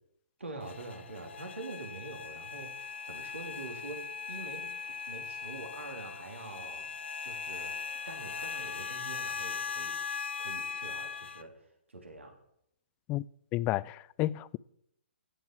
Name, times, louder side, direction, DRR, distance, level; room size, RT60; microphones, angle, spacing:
voice 1, 0.4-4.7 5.1-6.9 7.2-7.7 8.1-10.0 10.4-11.6 11.9-12.3, right 2 dB, 90° right, 3.1 m, -45 dB
sound 1, 0.6-11.4, left 6 dB, 75° left, 1.0 m, -39 dB
voice 2, 13.5-14.6, left 16 dB, 20° left, 0.3 m, -31 dB
16.0 x 7.8 x 4.5 m
hypercardioid pair, 135°, 6 cm